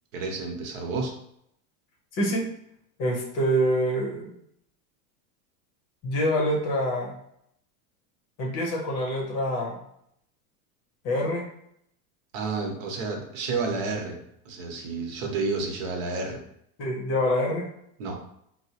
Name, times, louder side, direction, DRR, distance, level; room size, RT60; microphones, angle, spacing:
voice 1, 0.1-1.1 12.3-14.2 14.4-16.4 18.0-18.2, right 4 dB, 60° right, 1 dB, 0.9 m, -30 dB
voice 2, 2.1-2.4 3.0-4.4 6.0-7.1 8.4-9.8 11.0-11.4 16.8-17.7, equal, 35° left, 0 dB, 0.7 m, -26 dB
4.3 x 2.0 x 2.7 m, 0.73 s
supercardioid pair, 145°, 46 cm